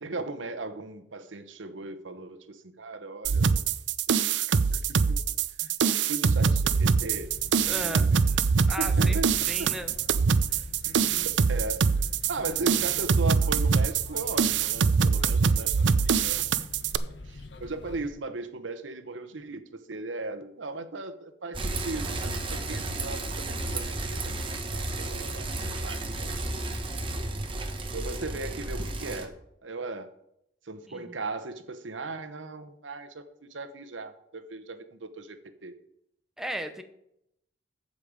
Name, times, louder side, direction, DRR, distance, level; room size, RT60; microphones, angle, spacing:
voice 1, 0.0-3.5 4.1-5.2 5.6-7.3 7.7-8.1 8.8-9.3 9.6-9.7 10.8-15.7 16.2-16.5 17.2-26.3 27.9-30.1 30.6-35.7, right 3 dB, 90° right, 9 dB, 1.0 m, -38 dB
sound 1, 3.2-17.0, right 5 dB, 70° right, 0.5 m, -24 dB
sound 2, 6.3-18.1, left 2 dB, 70° left, 1.0 m, -45 dB
voice 2, 7.6-8.0 8.3-8.4 8.7-9.2 9.5-9.9 10.5-10.6 30.9-31.1 36.4-36.8, equal, ahead, 6 dB, 0.8 m, -35 dB
Bicycle, 21.5-29.3, right 2 dB, 30° right, 1.1 m, -33 dB
14.0 x 5.3 x 5.0 m, 0.76 s
head